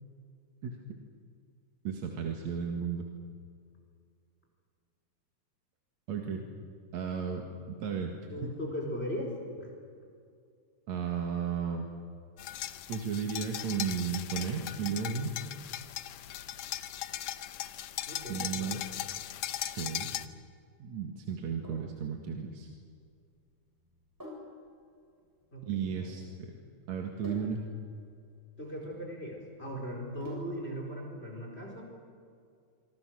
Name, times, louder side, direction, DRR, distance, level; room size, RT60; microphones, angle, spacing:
voice 1, 1.8-3.1 6.1-6.5 6.9-8.1 8.4-8.5 10.9-11.9 12.9-15.3 18.3-18.8 19.7-20.1 20.8-22.7 25.6-26.5 26.9-27.6, right 6 dB, 65° right, 2 dB, 3.0 m, -34 dB
voice 2, 8.3-9.7 18.1-18.8 25.5-26.1 28.6-31.8, equal, 20° left, 1 dB, 4.6 m, -39 dB
sound 1, 12.4-20.3, left 13 dB, 70° left, 2.0 m, -38 dB
Sink (filling or washing), 21.6-30.8, left 1 dB, 5° right, 7.3 m, -49 dB
26.5 x 25.5 x 6.4 m, 2.3 s
omnidirectional pair, 3.5 m